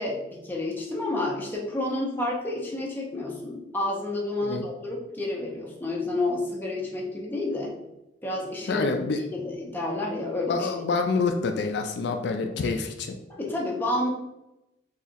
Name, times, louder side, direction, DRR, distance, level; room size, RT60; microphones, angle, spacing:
voice 1, 0.0-7.7 8.2-8.9 9.2-10.7 13.3-14.1, left 2 dB, 10° left, -3 dB, 0.6 m, -30 dB
voice 2, 8.7-9.2 10.5-13.2, left 4 dB, 65° left, 5 dB, 0.3 m, -27 dB
4.0 x 2.8 x 2.5 m, 0.91 s
head